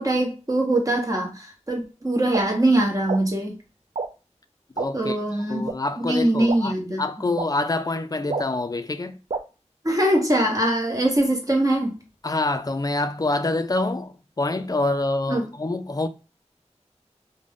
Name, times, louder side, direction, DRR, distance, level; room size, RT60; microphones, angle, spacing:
voice 1, 0.0-3.5 4.9-5.7 6.0-7.0 9.8-11.9 15.3-15.4, right 1 dB, 30° right, 0.9 m, -22 dB
sound 1, 2.3-2.4 3.1-3.2 3.9-4.1 4.8-4.9 5.7-5.8 6.5-6.6 7.4-7.5 8.3-8.4 9.3-9.4, right 4 dB, 60° right, 0.4 m, -26 dB
voice 2, 4.8-9.2 12.2-16.1, left 2 dB, 30° left, 0.4 m, -26 dB
2.4 x 2.2 x 3.5 m
wide cardioid pair, 40°, 12 cm